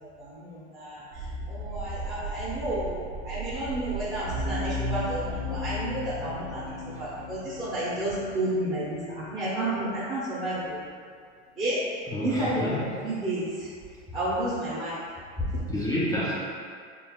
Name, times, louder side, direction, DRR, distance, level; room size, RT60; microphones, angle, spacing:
voice 1, 0.0-10.8 11.6-11.8 12.2-13.7 14.1-14.9 15.4-15.6, right 1 dB, 15° right, -10 dB, 0.9 m, -31 dB
sound 1, 1.1-7.3, right 3 dB, 85° right, 1.3 m, -38 dB
sound 2, 4.2-9.0, left 2 dB, 60° left, 1.1 m, -35 dB
voice 2, 12.1-12.8 15.7-16.3, left 1 dB, 10° left, -8 dB, 0.6 m, -29 dB
4.0 x 3.8 x 2.4 m, 2.1 s
hypercardioid pair, 115°, 34 cm